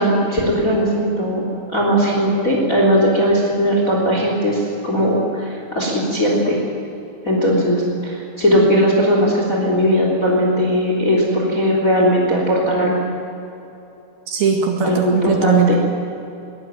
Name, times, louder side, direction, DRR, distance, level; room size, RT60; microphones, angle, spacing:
voice 1, 0.0-1.4 1.7-6.6 7.2-12.9 14.8-15.7, equal, 20° left, -2 dB, 3.7 m, -18 dB
voice 2, 14.3-15.7, right 5 dB, 75° right, 1 dB, 3.8 m, -19 dB
23.0 x 18.0 x 9.3 m, 2.9 s
omnidirectional pair, 4.4 m